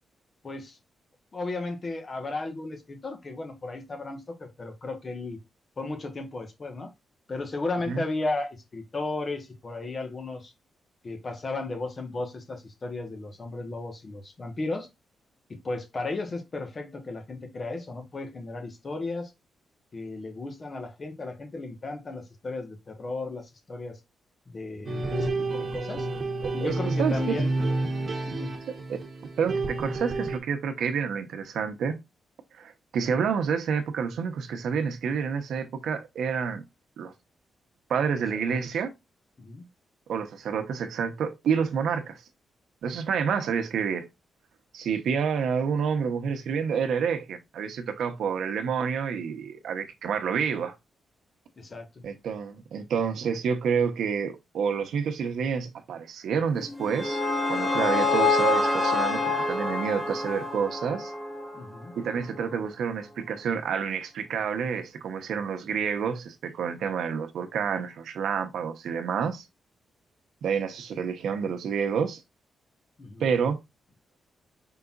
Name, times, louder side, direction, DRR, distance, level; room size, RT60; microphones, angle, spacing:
voice 1, 0.4-0.8 1.3-5.4 5.8-6.9 7.3-10.5 11.0-14.9 15.5-19.3 19.9-24.0 24.5-26.1 26.5-27.5 28.3-28.6 38.3-38.6 39.4-39.7 51.6-52.0 61.5-62.0 73.0-73.3, left 2 dB, 30° left, 1.2 m, -35 dB
sound 1, 24.9-30.4, right 2 dB, 40° right, 1.1 m, -29 dB
voice 2, 27.0-27.4 28.9-29.0 29.4-32.0 32.5-36.6 37.0-37.1 37.9-38.9 40.1-42.2 42.8-44.1 44.7-50.7 52.0-57.2 57.5-61.1 61.9-69.4 70.4-72.2 73.2-73.6, right 6 dB, 80° right, 0.9 m, -28 dB
sound 2, 56.6-61.7, left 3 dB, 5° left, 2.4 m, -26 dB
5.6 x 3.9 x 2.4 m
wide cardioid pair, 145°, 0 cm